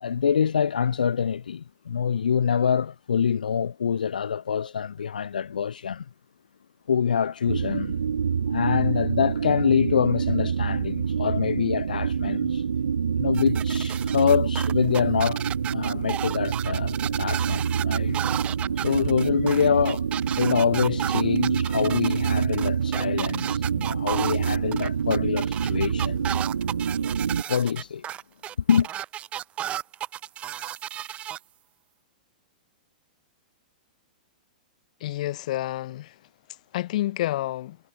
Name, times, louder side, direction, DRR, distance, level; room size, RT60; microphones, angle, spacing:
voice 1, 0.0-6.0 6.9-7.9 8.5-12.6 13.2-15.4 15.7-18.2 18.8-20.1 20.4-26.4 27.5-28.0 28.7-28.9, left 7 dB, 80° left, 0.7 m, -25 dB
sound 1, 7.5-27.4, right 7 dB, 80° right, 0.7 m, -26 dB
sound 2, 13.3-31.4, right 11 dB, 25° right, 1.1 m, -34 dB
voice 2, 35.0-36.2 36.7-37.8, left 15 dB, 60° left, 1.0 m, -29 dB
hypercardioid pair, 115°, 5 cm